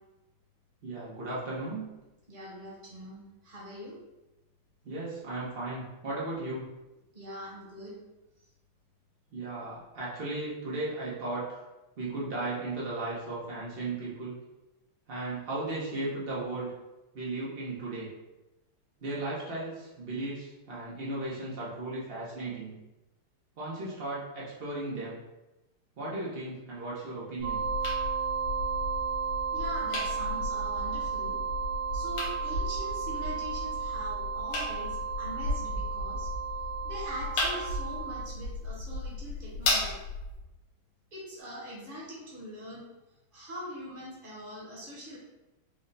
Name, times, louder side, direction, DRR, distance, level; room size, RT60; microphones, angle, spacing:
voice 1, 0.8-1.8 4.8-6.7 9.3-11.6 12.0-14.4 15.1-16.7 17.1-18.1 19.0-22.8 23.6-25.2 26.0-27.6, right 2 dB, 90° right, -6 dB, 0.5 m, -36 dB
voice 2, 2.3-4.0 7.1-8.0 29.5-31.4 31.9-36.3 36.8-40.0 41.1-42.9 43.3-45.2, equal, 40° right, -5 dB, 0.8 m, -42 dB
sound 1, 27.4-40.4, left 2 dB, 85° left, 1.7 m, -35 dB
sound 2, 27.4-38.3, right 6 dB, 70° right, 1.4 m, -33 dB
4.8 x 2.1 x 3.9 m, 1.0 s
omnidirectional pair, 2.3 m